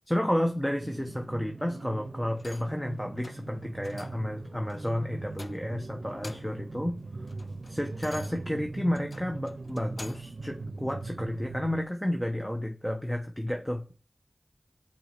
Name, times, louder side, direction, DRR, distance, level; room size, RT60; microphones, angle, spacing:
voice 1, 0.1-7.0 7.7-13.9, equal, 10° left, 3 dB, 1.0 m, -31 dB
sound 1, 0.8-11.8, right 3 dB, 80° right, 0.6 m, -40 dB
sound 2, 2.4-2.8 3.2-3.5 3.8-4.3 4.7-4.9 5.3-5.8 6.1-6.7 7.0-10.4 10.9-11.0, left 3 dB, 75° left, 0.5 m, -48 dB
5.5 x 4.3 x 5.9 m, 0.37 s
wide cardioid pair, 40°, 0 cm